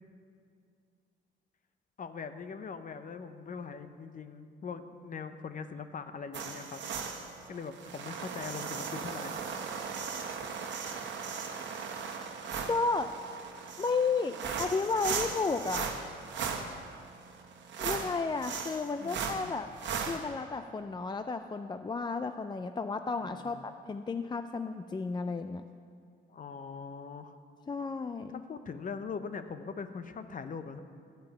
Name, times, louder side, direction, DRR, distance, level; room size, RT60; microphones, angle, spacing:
voice 1, 2.0-6.8 7.5-9.3 19.0-19.6 23.2-23.7 26.3-27.3 28.3-30.8, left 5 dB, 40° left, 10 dB, 0.8 m, -41 dB
sound 1, 6.3-20.2, right 6 dB, 65° right, 1.3 m, -37 dB
voice 2, 12.7-13.1 13.8-15.9 17.8-19.7 20.0-25.7 27.7-28.4, left 4 dB, 20° left, 9 dB, 0.4 m, -33 dB
12.5 x 5.4 x 9.0 m, 2.3 s
cardioid pair, 90°, 20 cm